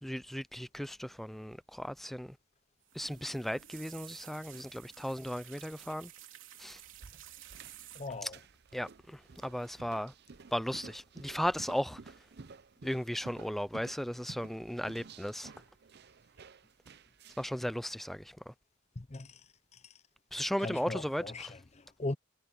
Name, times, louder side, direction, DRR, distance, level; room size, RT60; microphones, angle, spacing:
voice 1, 0.0-2.4 2.9-6.1 6.6-6.8 8.2-8.3 8.7-10.1 10.5-12.1 12.8-15.5 17.4-18.5 20.3-21.5, equal, ahead, 0.4 m, -36 dB
sound 1, 2.8-8.4 9.4-9.7 9.9-10.3 11.4-12.0 12.3-12.9 13.3-13.7 14.1-14.2, right 11 dB, 70° right, 3.5 m, -53 dB
sound 2, 6.7-17.6, right 4 dB, 55° right, 0.6 m, -53 dB
voice 2, 7.9-8.4 18.9-20.0 20.6-22.1, left 2 dB, 35° left, 0.8 m, -40 dB
head